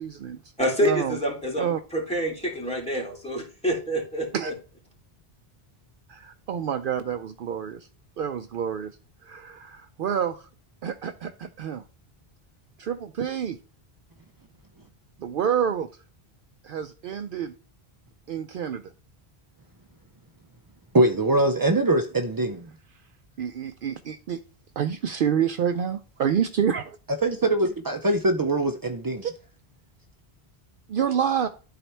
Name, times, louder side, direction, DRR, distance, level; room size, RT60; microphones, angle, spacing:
voice 1, 0.0-0.4 0.8-1.2 1.6-1.8 4.3-4.5 6.1-7.9 8.2-8.9 9.2-10.5 10.8-11.8 12.8-13.6 15.2-15.9 16.6-17.5 18.3-18.8 23.4-24.4 24.8-27.0 29.2-29.3 30.9-31.5, right 8 dB, 65° right, 0.7 m, -28 dB
voice 2, 0.6-4.3, equal, 5° left, 3.0 m, -27 dB
voice 3, 20.9-22.7 27.2-29.3, right 2 dB, 35° right, 0.3 m, -22 dB
13.0 x 4.3 x 3.3 m
omnidirectional pair, 1.0 m